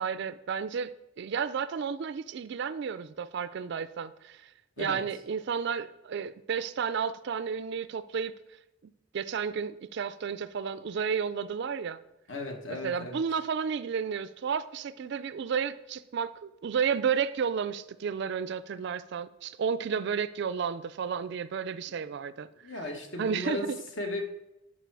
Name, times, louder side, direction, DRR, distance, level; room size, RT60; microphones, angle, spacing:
voice 1, 0.0-4.5 4.8-8.3 9.1-12.0 12.7-22.5 23.2-23.8, right 6 dB, 50° right, 0.3 m, -32 dB
voice 2, 12.3-13.2 22.6-23.7 24.0-24.2, left 2 dB, 55° left, 1.2 m, -35 dB
11.0 x 4.4 x 4.7 m
head